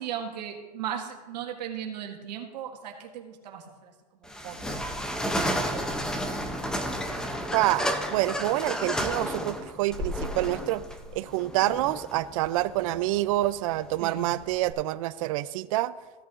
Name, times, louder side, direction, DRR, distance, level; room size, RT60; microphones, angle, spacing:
voice 1, 0.0-4.9 5.4-6.0 14.0-14.3, right 9 dB, 85° right, 1 dB, 1.7 m, -37 dB
sound 1, 4.3-14.7, equal, 5° left, 0.6 m, -32 dB
voice 2, 7.5-10.8 11.1-15.9, right 16 dB, 55° right, 16 dB, 0.4 m, -27 dB
16.0 x 9.0 x 2.5 m, 1.3 s
supercardioid pair, 150°, 21 cm